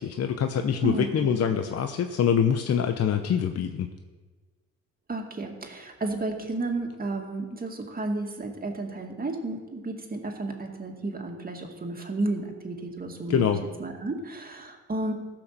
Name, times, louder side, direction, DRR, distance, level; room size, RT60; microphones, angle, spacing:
voice 1, 0.0-3.9 13.3-13.6, left 8 dB, 55° left, 7 dB, 0.8 m, -25 dB
voice 2, 0.8-1.5 5.1-13.5 13.8-15.1, right 2 dB, 30° right, 2 dB, 2.2 m, -32 dB
15.5 x 6.0 x 6.8 m, 1.4 s
cardioid pair, 90°, 30 cm